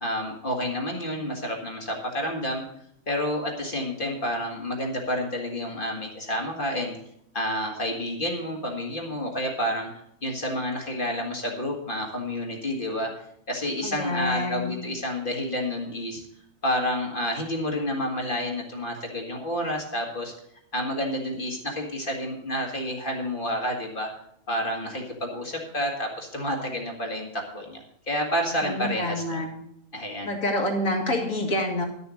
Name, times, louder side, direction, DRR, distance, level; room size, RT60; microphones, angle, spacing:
voice 1, 0.0-2.6 3.1-7.0 7.3-9.9 10.2-13.1 13.5-16.2 16.6-20.3 20.7-24.1 24.5-29.4 29.9-30.3, equal, 35° left, 1 dB, 1.8 m, -29 dB
voice 2, 13.8-14.7 28.6-29.5 30.2-31.8, left 1 dB, 60° left, 2 dB, 2.3 m, -27 dB
11.0 x 6.9 x 6.2 m, 0.72 s
omnidirectional pair, 1.5 m